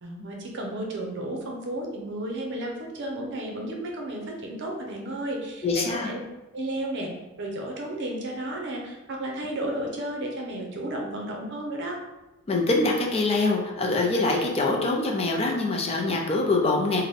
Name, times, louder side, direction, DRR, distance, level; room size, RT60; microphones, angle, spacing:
voice 1, 0.0-6.2 6.5-7.1 7.4-12.0, right 1 dB, 60° right, 0 dB, 0.7 m, -33 dB
voice 2, 5.6-6.1 12.5-17.0, left 2 dB, 30° left, 0 dB, 0.5 m, -24 dB
3.9 x 2.1 x 3.5 m, 1.0 s
head